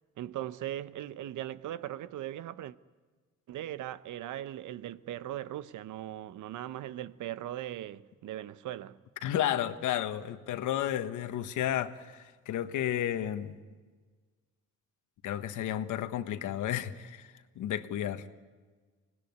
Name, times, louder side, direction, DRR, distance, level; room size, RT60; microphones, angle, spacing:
voice 1, 0.2-2.7 3.5-9.0, right 12 dB, 80° right, 0.9 m, -39 dB
voice 2, 9.2-13.5 15.2-17.3 17.6-18.3, left 11 dB, 80° left, 1.4 m, -32 dB
25.0 x 19.5 x 9.6 m
cardioid pair, 90°, 30 cm